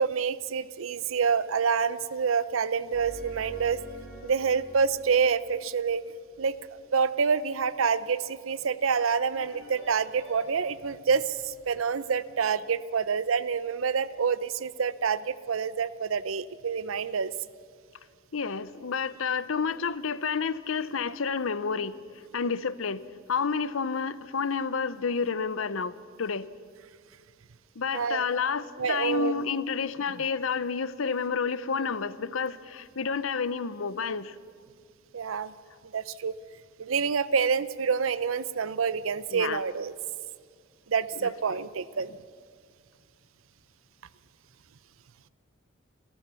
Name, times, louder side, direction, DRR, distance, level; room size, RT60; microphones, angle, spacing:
voice 1, 0.0-3.8 4.2-6.0 6.4-6.5 6.9-17.3 27.9-28.3 28.8-29.5 35.1-35.5 35.9-36.3 36.8-39.9 40.9-42.1, right 6 dB, 75° right, 16 dB, 0.6 m, -27 dB
sound 1, 2.9-6.9 9.3-10.4, equal, 60° right, 6.4 m, -47 dB
voice 2, 18.3-22.0 22.3-23.0 23.3-25.9 26.2-26.5 27.8-34.3 39.3-39.6, left 5 dB, 70° left, 16 dB, 0.7 m, -30 dB
29.0 x 13.5 x 6.9 m, 2.1 s
head